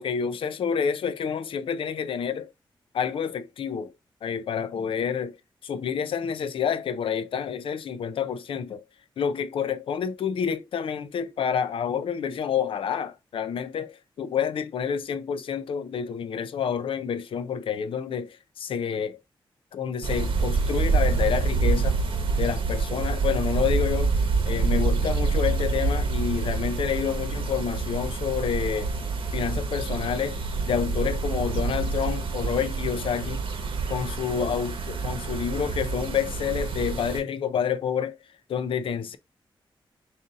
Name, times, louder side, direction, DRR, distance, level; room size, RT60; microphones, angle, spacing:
voice 1, 0.0-2.5 2.9-3.9 4.2-5.4 5.6-8.8 9.2-19.2 19.7-22.0 22.4-28.9 29.3-33.4 33.9-38.2 38.5-39.2, left 7 dB, 80° left, 0.4 m, -28 dB
sound 1, 20.0-37.2, right 4 dB, 75° right, 0.9 m, -27 dB
3.9 x 2.5 x 3.7 m
wide cardioid pair, 120°, 9 cm